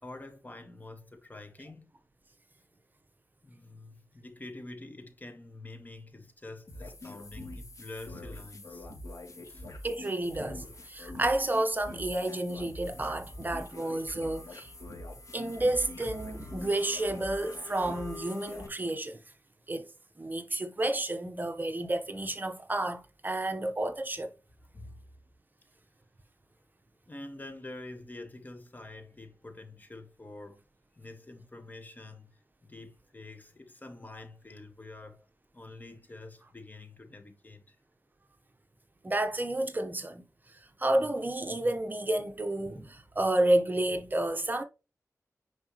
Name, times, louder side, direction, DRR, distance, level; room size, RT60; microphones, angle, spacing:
voice 1, 0.0-1.9 3.4-8.9 9.5-9.7 24.7-25.0 27.1-30.7 30.9-32.3 32.6-35.3 35.5-37.7, left 2 dB, 30° left, 1.6 m, -47 dB
sound 1, 6.7-18.7, left 1 dB, 65° left, 3.0 m, -44 dB
voice 2, 9.8-14.7 15.3-19.2 19.7-19.9 20.2-24.3 39.0-40.2 40.5-44.6, right 1 dB, 30° right, 1.2 m, -30 dB
10.0 x 5.0 x 3.2 m
wide cardioid pair, 105°, 6 cm